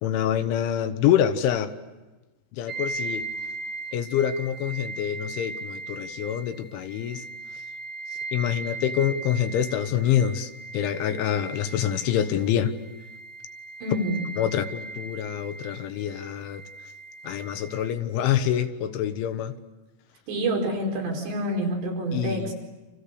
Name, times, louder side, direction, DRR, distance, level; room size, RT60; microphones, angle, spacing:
voice 1, 0.0-1.7 2.5-3.2 3.9-7.3 8.3-12.8 14.4-16.6 17.2-19.6 22.1-22.5, left 10 dB, 75° left, 8 dB, 3.6 m, -26 dB
sound 1, 2.7-17.9, right 3 dB, 35° right, 1.6 m, -38 dB
voice 2, 13.8-14.3 20.3-22.5, right 1 dB, 60° right, 1 dB, 6.8 m, -27 dB
30.0 x 28.0 x 6.7 m, 1.1 s
omnidirectional pair, 5.7 m